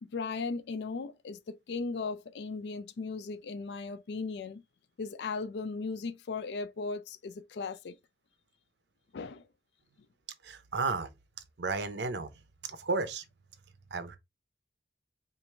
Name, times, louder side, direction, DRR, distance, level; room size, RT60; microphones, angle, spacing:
voice 1, 0.0-4.6 5.0-8.0 9.1-9.4, left 4 dB, 65° left, 0.4 m, -37 dB
voice 2, 10.4-11.1 11.6-12.3 12.6-13.2 13.9-14.2, right 4 dB, 70° right, 0.7 m, -33 dB
4.6 x 2.5 x 3.2 m
head